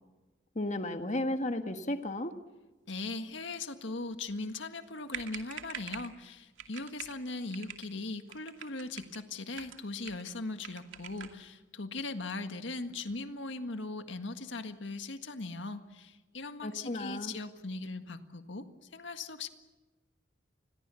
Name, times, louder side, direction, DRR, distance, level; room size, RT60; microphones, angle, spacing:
voice 1, 0.5-2.4 16.6-17.3, left 1 dB, 40° left, 7 dB, 1.6 m, -34 dB
voice 2, 2.9-19.5, left 3 dB, 70° left, 8 dB, 1.8 m, -39 dB
sound 1, 4.8-4.9 5.1-6.2 6.6-7.2 7.5-7.9 8.3-9.2 9.5-10.3 10.6-11.4, right 8 dB, 85° right, 2.4 m, -45 dB
28.0 x 22.0 x 7.0 m, 1.2 s
head